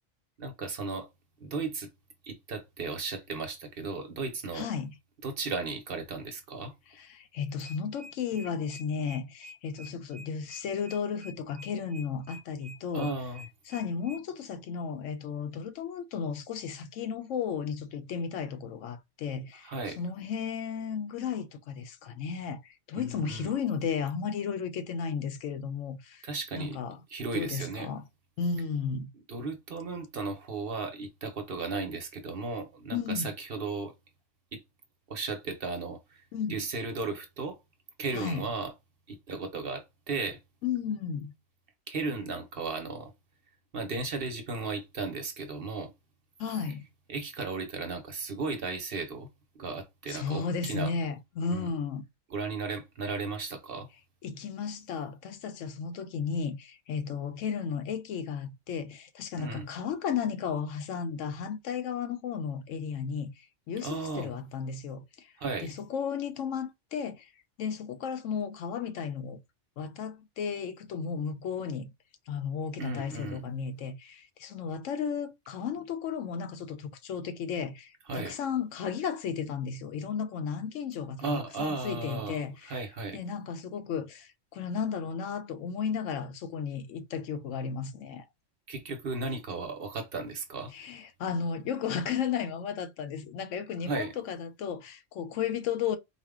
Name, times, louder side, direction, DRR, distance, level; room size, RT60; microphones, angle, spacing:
voice 1, 0.4-1.1 1.4-1.9 2.2-4.7 5.2-6.7 12.9-13.5 19.6-20.0 23.0-23.5 26.2-26.8 27.1-27.9 29.3-33.9 34.5-34.6 35.1-36.2 36.5-37.6 38.0-38.7 39.1-40.4 41.9-43.1 43.7-45.9 47.1-49.3 49.5-50.9 51.5-51.7 52.3-53.9 59.4-59.7 63.8-64.3 65.4-65.7 72.8-73.4 78.1-78.4 81.2-82.4 82.7-83.2 88.7-90.7 93.8-94.1, right 3 dB, 50° right, 0.9 m, -35 dB
voice 2, 4.5-4.9 6.9-13.1 13.7-26.3 26.6-27.0 27.3-28.0 28.4-29.1 32.9-33.3 36.3-36.6 38.1-38.5 40.6-41.3 46.4-46.8 50.1-52.0 54.2-65.3 65.6-67.3 67.6-69.4 69.8-71.9 72.3-82.8 83.1-88.3 90.7-96.0, left 6 dB, 80° left, 1.0 m, -34 dB
sound 1, 7.6-14.2, left 1 dB, 30° right, 0.5 m, -48 dB
4.3 x 2.2 x 3.5 m
omnidirectional pair, 1.3 m